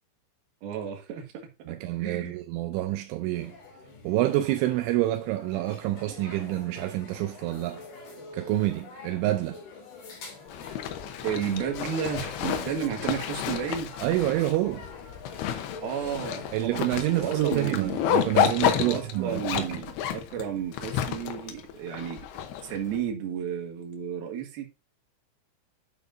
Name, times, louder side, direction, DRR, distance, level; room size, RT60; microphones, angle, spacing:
voice 1, 0.6-1.3 1.7-2.4 11.2-13.9 15.8-18.0 18.8-22.2 22.6-24.7, right 8 dB, 60° right, 3.0 m, -32 dB
voice 2, 1.7-3.5 4.0-7.8 8.3-9.6 14.0-14.9 16.5-19.8, right 15 dB, 85° right, 2.9 m, -28 dB
sound 1, 3.3-19.4, left 5 dB, 45° left, 3.6 m, -45 dB
Zipper (clothing), 10.5-23.0, left 9 dB, 75° left, 2.4 m, -30 dB
9.8 x 7.2 x 2.6 m
omnidirectional pair, 5.6 m